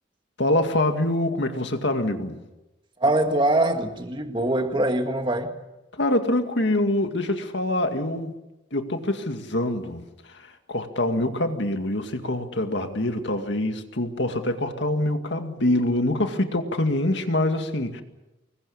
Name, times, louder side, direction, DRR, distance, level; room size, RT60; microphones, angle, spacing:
voice 1, 0.4-2.4 5.9-8.3 8.7-10.0 10.3-18.0, left 1 dB, 60° left, 6 dB, 2.2 m, -25 dB
voice 2, 3.0-5.6, right 1 dB, 25° right, 5 dB, 2.0 m, -23 dB
25.5 x 21.0 x 7.2 m, 1.0 s
head